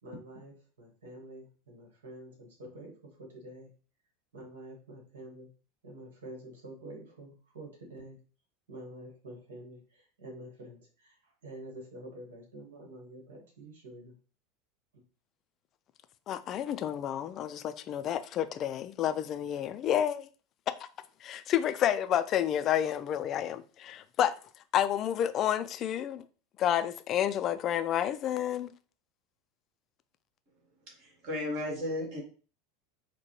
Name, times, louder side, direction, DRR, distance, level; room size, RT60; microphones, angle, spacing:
voice 1, 0.0-3.7 4.3-5.5 5.8-8.2 8.7-14.2 14.9-15.0, right 1 dB, 70° right, 1.3 m, -48 dB
voice 2, 16.3-20.3 21.2-24.3 24.7-26.2 26.6-28.7, left 10 dB, 40° left, 0.3 m, -30 dB
voice 3, 30.9-32.2, left 1 dB, 50° right, 1.7 m, -35 dB
4.5 x 2.2 x 3.0 m
figure-of-eight pair, 80°, 0 cm